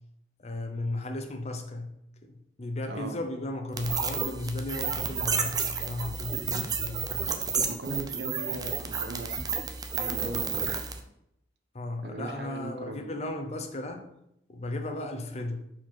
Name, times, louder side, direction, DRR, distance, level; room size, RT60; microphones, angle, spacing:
voice 1, 0.4-1.9 2.2-7.3 8.5-8.6 11.7-14.1 14.5-15.6, left 2 dB, 35° left, 5 dB, 0.7 m, -35 dB
sound 1, 3.8-11.0, right 5 dB, 20° right, 0.5 m, -31 dB
voice 2, 7.7-9.5 9.9-10.8 12.0-13.0, right 2 dB, 65° right, 4 dB, 1.0 m, -38 dB
5.0 x 4.3 x 5.9 m, 0.79 s
head